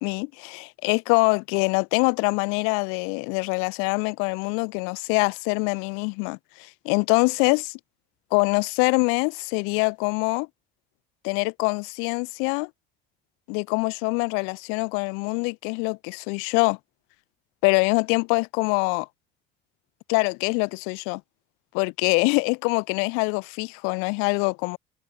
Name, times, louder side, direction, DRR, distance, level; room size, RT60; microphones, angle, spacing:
voice 1, 0.0-7.8 8.3-10.5 11.2-12.7 13.5-16.8 17.6-19.1 20.1-21.2 21.7-24.8, left 35 dB, 85° left, 0.9 m, -24 dB
cardioid pair, 120°, 21 cm